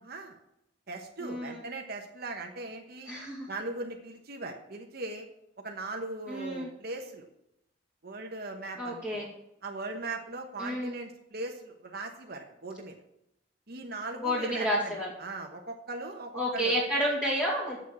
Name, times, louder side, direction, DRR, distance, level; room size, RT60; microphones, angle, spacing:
voice 1, 0.0-0.4 0.9-3.1 3.5-5.3 5.6-7.3 8.0-9.3 9.6-13.0 13.7-16.7, right 2 dB, 60° right, 3 dB, 1.2 m, -39 dB
voice 2, 1.2-1.6 3.1-3.5 6.3-6.7 8.8-9.3 10.6-11.0 14.2-15.1 16.3-17.8, equal, 10° left, -6 dB, 2.5 m, -30 dB
7.9 x 7.2 x 8.5 m, 0.82 s
head